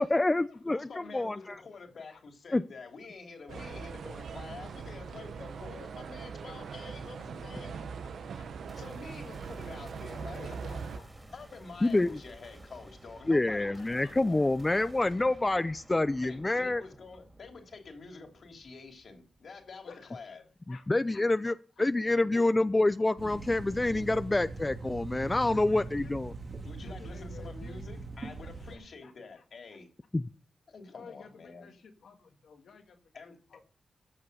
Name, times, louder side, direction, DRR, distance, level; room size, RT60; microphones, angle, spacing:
voice 1, 0.0-0.9 1.1-1.6 2.5-2.6 11.8-12.2 13.3-16.8 20.7-26.3 30.1-30.2, left 2 dB, 25° left, 0.6 m, -27 dB
voice 2, 0.6-7.8 8.8-10.8 11.3-14.6 16.2-20.5 26.6-29.9 30.7-31.7 33.1-33.4, left 4 dB, 65° left, 3.1 m, -48 dB
voice 3, 3.5-3.9 5.4-5.5 10.3-11.1 13.6-14.2 14.8-14.9 15.2-15.3 19.9-20.1 20.7-20.9 21.1-21.9 25.5-26.1 26.8-27.8 28.4-29.1 30.9-33.1 33.5-33.6, left 5 dB, 85° left, 1.9 m, -52 dB
sound 1, 3.5-11.0, right 5 dB, 85° right, 1.2 m, -41 dB
sound 2, 8.7-20.0, right 2 dB, 15° right, 3.4 m, -53 dB
sound 3, 23.2-28.8, right 3 dB, 55° right, 3.0 m, -41 dB
14.5 x 6.6 x 6.8 m
cardioid pair, 65°, 0 cm